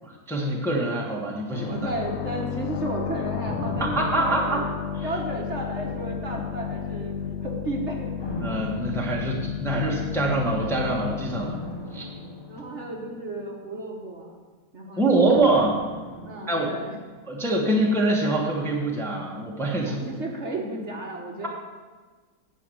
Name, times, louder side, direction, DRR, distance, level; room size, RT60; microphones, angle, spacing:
voice 1, 0.3-1.9 3.8-4.6 5.0-5.1 6.3-6.4 8.4-11.6 11.9-12.1 15.0-15.8 16.5-16.7 17.3-20.1, right 2 dB, ahead, -2 dB, 1.2 m, -24 dB
sound 1, 1.5-13.0, left 8 dB, 90° left, 0.6 m, -33 dB
voice 2, 1.7-4.7 5.0-7.1 7.4-8.2 12.5-14.3 14.7-15.7 16.2-16.9 19.9-21.5, right 2 dB, 45° right, 0 dB, 1.4 m, -33 dB
sound 2, 3.4-5.4 5.9-7.1 8.2-9.9 11.3-13.7 15.3-17.5 17.8-17.9, left 1 dB, 20° left, 0.8 m, -39 dB
9.7 x 5.3 x 7.8 m, 1.4 s
omnidirectional pair, 1.8 m